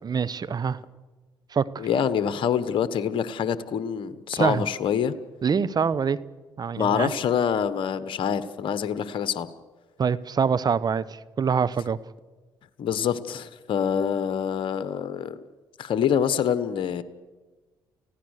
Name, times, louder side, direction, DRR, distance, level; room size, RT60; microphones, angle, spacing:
voice 1, 0.0-0.8 1.5-1.9 4.3-4.6 5.4-6.2 6.6-7.1 10.0-11.0 11.4-12.0, right 6 dB, 40° right, 15 dB, 1.0 m, -24 dB
voice 2, 1.8-5.1 6.8-9.5 12.8-15.4 15.8-17.0, left 8 dB, 60° left, 14 dB, 1.2 m, -26 dB
30.0 x 16.0 x 6.6 m, 1.3 s
hypercardioid pair, 50°, 10 cm